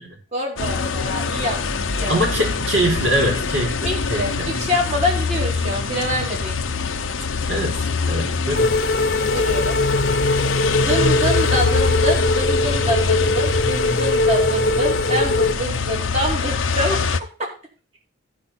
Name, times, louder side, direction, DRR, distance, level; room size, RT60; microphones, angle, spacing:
voice 1, 0.3-1.6 1.9-2.1 3.8-4.3 4.6-6.5 9.3-9.8 10.6-17.0, equal, 35° right, -1 dB, 2.6 m, -25 dB
sound 1, 0.6-17.2, left 4 dB, 75° left, 0.8 m, -24 dB
voice 2, 2.1-4.5 7.5-8.8, right 1 dB, 65° right, 0 dB, 4.4 m, -23 dB
sound 2, 8.5-15.5, left 2 dB, 50° left, 0.9 m, -21 dB
14.5 x 5.2 x 4.3 m, 0.36 s
head